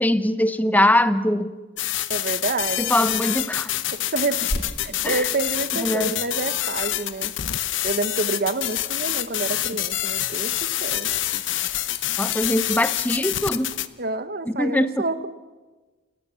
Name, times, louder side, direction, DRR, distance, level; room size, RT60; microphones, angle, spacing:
voice 1, 0.0-1.5 2.8-3.7 5.0-5.3 5.8-6.1 12.2-13.7 14.5-15.1, left 1 dB, 10° left, 12 dB, 0.9 m, -22 dB
sound 1, 1.8-13.9, left 13 dB, 70° left, 0.9 m, -27 dB
voice 2, 2.1-2.8 3.9-4.5 4.8-7.3 7.8-11.1 14.0-15.3, right 3 dB, 50° right, 12 dB, 1.1 m, -28 dB
sound 2, 3.7-13.8, left 2 dB, 55° left, 2.3 m, -40 dB
29.0 x 18.0 x 7.1 m, 1.3 s
head